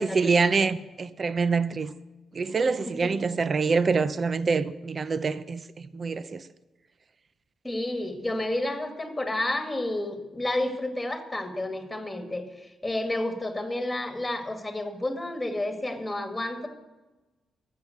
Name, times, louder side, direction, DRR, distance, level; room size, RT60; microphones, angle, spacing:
voice 1, 0.0-1.9 2.3-6.4, right 4 dB, 40° right, 0.6 m, -25 dB
voice 2, 7.6-16.7, left 1 dB, 10° left, 2.0 m, -30 dB
13.0 x 7.6 x 9.2 m
cardioid pair, 110°, 0 cm